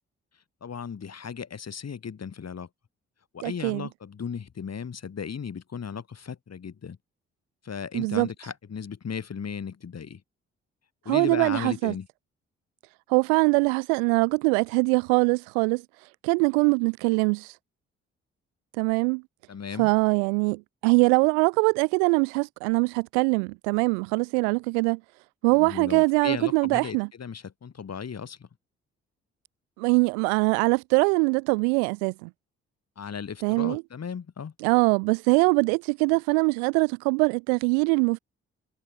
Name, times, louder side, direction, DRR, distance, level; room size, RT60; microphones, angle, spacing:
voice 1, 0.6-2.7 3.3-7.0 7.6-10.2 11.1-12.1 19.5-19.9 25.5-28.5 33.0-34.5, left 6 dB, 50° left, 7.0 m, -36 dB
voice 2, 3.4-3.9 7.9-8.3 11.1-11.9 13.1-15.8 16.2-17.5 18.8-19.2 19.8-25.0 25.4-27.1 29.8-32.3 33.4-33.8 34.6-38.2, right 40 dB or more, 85° right, 1.4 m, -23 dB
hypercardioid pair, 45°, 32 cm